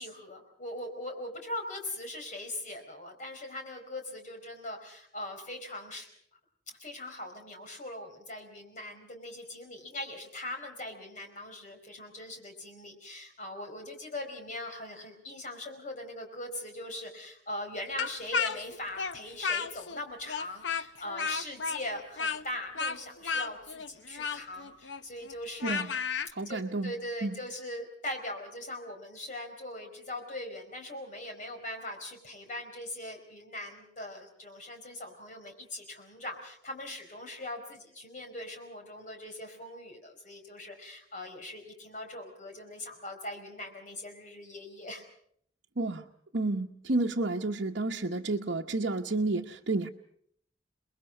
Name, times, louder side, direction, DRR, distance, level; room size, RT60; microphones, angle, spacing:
voice 1, 0.0-6.1 6.7-26.0 26.4-45.0, left 1 dB, 45° left, 4 dB, 4.7 m, -41 dB
Speech, 18.0-20.0 20.3-26.3, left 5 dB, 80° left, 0.8 m, -33 dB
voice 2, 26.3-26.9 27.2-27.3 45.8-46.0 46.3-49.9, right 2 dB, 65° right, -1 dB, 1.0 m, -30 dB
29.5 x 21.0 x 5.4 m, 0.66 s
head